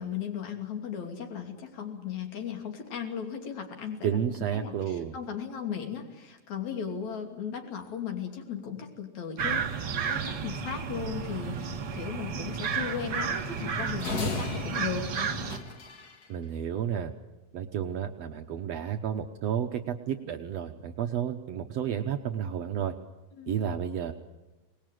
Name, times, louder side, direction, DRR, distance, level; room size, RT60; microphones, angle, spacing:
voice 1, 0.0-4.2 4.5-15.4 23.4-23.5, left 7 dB, 70° left, 4 dB, 4.1 m, -36 dB
voice 2, 4.0-5.1 16.3-17.1 17.5-22.9 23.5-24.1, right 9 dB, 65° right, 5 dB, 2.1 m, -31 dB
sound 1, 9.4-15.6, right 6 dB, 40° right, 1.9 m, -32 dB
sound 2, 14.0-16.2, left 3 dB, 40° left, 1.8 m, -35 dB
26.0 x 20.0 x 9.3 m, 1.1 s
omnidirectional pair, 3.4 m